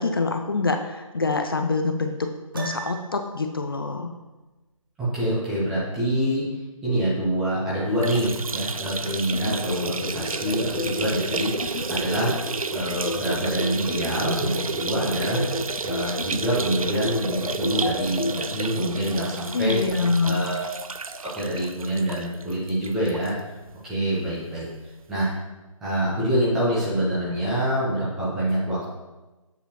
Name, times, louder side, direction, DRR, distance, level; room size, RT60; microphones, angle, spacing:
voice 1, 0.0-2.3 2.5-4.1 19.5-20.5, left 3 dB, 40° left, 5 dB, 0.6 m, -25 dB
Piano, 2.5-3.4, right 6 dB, 40° right, 0.9 m, -36 dB
voice 2, 5.0-6.5 6.8-12.4 12.7-15.4 15.8-19.8 20.2-20.7 21.2-23.4 23.8-24.7 25.1-25.3 25.8-28.8, right 1 dB, 5° right, -9 dB, 0.6 m, -26 dB
sound 1, 7.9-23.3 23.7-23.8 24.1-24.2 25.2-25.3, right 4 dB, 85° right, 0.4 m, -32 dB
sound 2, 9.3-18.3, left 2 dB, 85° left, 0.9 m, -31 dB
8.1 x 6.6 x 2.9 m, 1.1 s
figure-of-eight pair, 155°, 18 cm